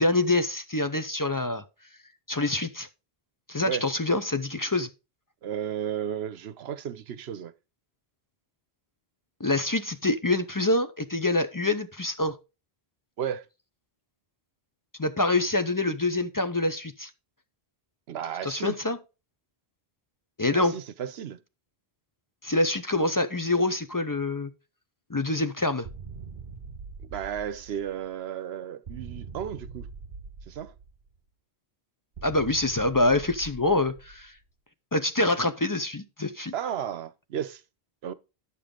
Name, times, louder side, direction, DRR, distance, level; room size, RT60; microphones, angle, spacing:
voice 1, 0.0-1.6 2.3-2.9 3.5-4.9 9.4-12.4 15.0-17.1 18.4-19.0 20.4-20.8 22.4-24.5 25.1-25.9 32.2-34.3 34.9-36.5, left 2 dB, 25° left, 0.4 m, -26 dB
voice 2, 5.4-7.5 13.2-13.4 18.1-18.8 20.5-21.4 27.1-29.9 30.5-30.7 36.5-37.6 38.0-38.1, right 9 dB, 75° right, 0.9 m, -33 dB
sound 1, 25.8-28.1 28.9-31.2 32.2-34.4, right 4 dB, 50° right, 1.3 m, -43 dB
10.0 x 7.0 x 3.7 m
omnidirectional pair, 1.1 m